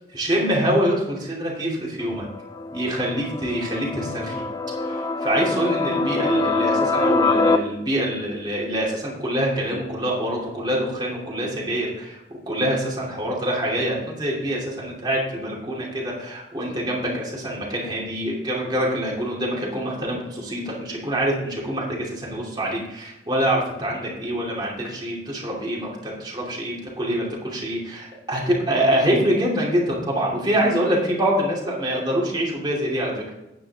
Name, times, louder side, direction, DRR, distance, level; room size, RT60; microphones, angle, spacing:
voice 1, 0.1-2.3 2.7-4.4 4.8-33.2, equal, 25° right, -4 dB, 2.8 m, -25 dB
sound 1, 2.0-7.6, left 3 dB, 20° left, 0.4 m, -24 dB
10.0 x 9.1 x 3.6 m, 0.96 s
head